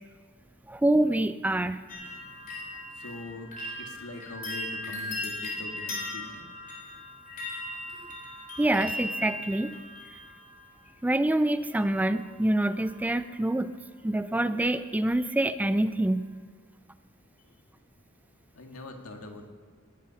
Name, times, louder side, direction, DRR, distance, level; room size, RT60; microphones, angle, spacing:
voice 1, 0.7-1.8 8.6-9.7 11.0-13.7 14.0-16.2, right 1 dB, 5° right, 12 dB, 0.3 m, -26 dB
sound 1, 1.9-10.8 11.7-12.3 12.5-13.1 13.4-13.5, left 1 dB, 40° left, 3.8 m, -38 dB
voice 2, 3.0-6.5 18.5-19.5, left 2 dB, 85° left, 3 dB, 1.8 m, -42 dB
20.0 x 8.5 x 5.7 m, 1.5 s
head